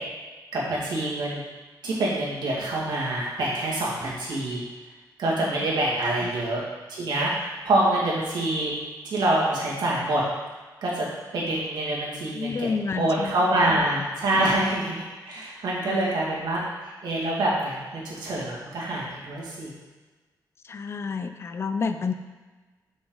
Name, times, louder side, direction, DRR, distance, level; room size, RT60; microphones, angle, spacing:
voice 1, 0.5-1.4 1.8-4.6 5.2-6.6 6.9-8.7 9.0-10.2 10.8-11.1 11.3-12.7 12.9-19.7, right 1 dB, 85° right, -5 dB, 2.2 m, -26 dB
voice 2, 12.3-13.3 13.7-13.8 14.4-14.6 15.8-16.0 20.6-22.1, left 5 dB, 35° left, 8 dB, 0.4 m, -30 dB
7.2 x 6.2 x 3.9 m, 1.3 s
wide cardioid pair, 120°, 7 cm